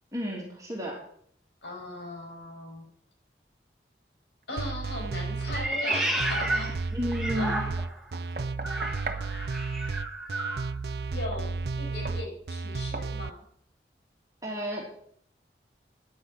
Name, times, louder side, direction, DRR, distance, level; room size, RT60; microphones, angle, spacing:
voice 1, 0.1-1.0 6.9-7.7 14.4-14.8, equal, 20° right, -2 dB, 2.9 m, -32 dB
voice 2, 1.6-2.8 4.5-6.8 7.3-7.8 11.1-13.4, left 2 dB, 85° left, 0 dB, 6.1 m, -38 dB
sound 1, 4.6-13.3, right 4 dB, 70° right, 0.5 m, -33 dB
Meow, 5.5-8.0 8.6-10.7, right 1 dB, ahead, 2.2 m, -32 dB
Knock, 5.5-6.7 8.1-9.3 11.3-11.5 12.1-12.3 12.9-13.2, right 3 dB, 50° right, 1.3 m, -39 dB
10.0 x 9.7 x 9.0 m, 0.65 s
head